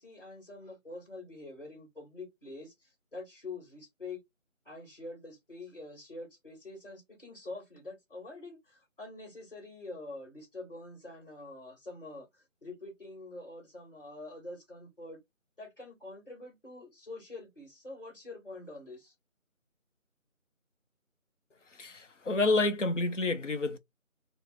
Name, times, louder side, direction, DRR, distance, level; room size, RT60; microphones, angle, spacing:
voice 1, 0.0-4.2 4.6-12.3 12.6-15.2 15.6-19.1, left 2 dB, 40° left, 1.6 m, -46 dB
voice 2, 21.7-23.8, left 2 dB, 60° left, 0.6 m, -29 dB
3.2 x 2.0 x 3.1 m
figure-of-eight pair, 175°, 41 cm